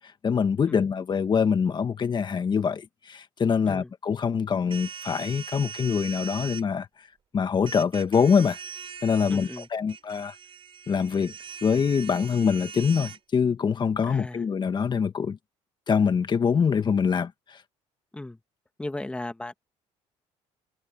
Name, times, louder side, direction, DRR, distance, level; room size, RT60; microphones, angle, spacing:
voice 1, 0.2-6.9 7.3-8.6 9.0-10.3 10.9-11.3 11.6-15.4 15.9-17.3, left 6 dB, 35° left, 1.7 m, -24 dB
sound 1, 4.7-6.6 7.7-13.2, right 7 dB, 45° right, 5.6 m, -41 dB
voice 2, 9.3-9.7 14.1-14.4 18.1-18.4 18.8-19.5, left 2 dB, 10° left, 1.7 m, -36 dB
cardioid pair, 95°, 13 cm